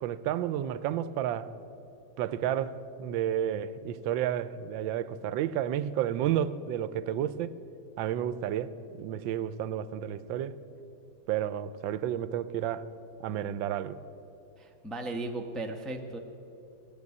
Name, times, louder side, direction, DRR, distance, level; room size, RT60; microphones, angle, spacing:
voice 1, 0.0-1.5 2.2-7.6 8.0-10.6 11.3-12.8 13.2-14.0, right 10 dB, 80° right, 1.3 m, -31 dB
voice 2, 14.6-16.2, right 2 dB, ahead, 0.4 m, -36 dB
16.5 x 7.7 x 9.5 m
omnidirectional pair, 2.1 m